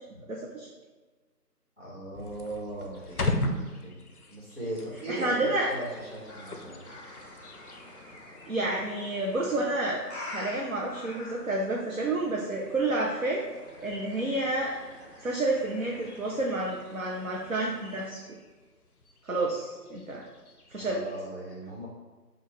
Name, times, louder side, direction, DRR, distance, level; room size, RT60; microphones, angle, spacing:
voice 1, 0.3-0.7 5.1-5.7 8.5-10.0 10.3-13.4 13.8-14.8 15.2-18.2 19.2-20.2 20.7-21.0, right 2 dB, 55° right, -2 dB, 0.6 m, -29 dB
voice 2, 1.8-4.0 4.3-6.8 20.8-21.9, right 1 dB, 40° right, -6 dB, 1.3 m, -38 dB
sound 1, 2.1-21.3, left 1 dB, 60° left, 0.6 m, -41 dB
sound 2, 5.1-18.1, left 1 dB, 40° left, 0.9 m, -47 dB
6.4 x 2.4 x 3.2 m, 1.3 s
figure-of-eight pair, 175°, 49 cm